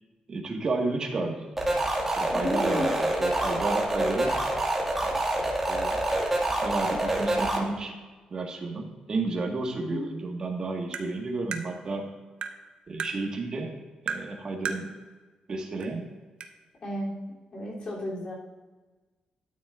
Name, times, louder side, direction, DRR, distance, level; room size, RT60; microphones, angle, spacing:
voice 1, 0.3-1.6 2.0-4.3 5.0-5.1 5.7-6.0 6.6-8.0 8.3-12.1 12.9-13.8 14.1-14.9 15.5-16.1, right 3 dB, 35° right, 0 dB, 1.7 m, -32 dB
sound 1, 1.6-7.6, right 1 dB, 10° right, 2.0 m, -26 dB
voice 2, 2.3-2.9 9.9-10.1 16.8-17.2 17.5-18.3, left 1 dB, 45° left, -4 dB, 3.3 m, -33 dB
Tap, 10.9-11.1 11.5-11.7 12.4-12.6 13.0-13.1 14.1-14.3 14.7-14.8 15.8-15.9 16.4-16.5, right 6 dB, 65° right, 0.9 m, -33 dB
13.0 x 9.4 x 2.6 m, 1.3 s
cardioid pair, 140°, 2 cm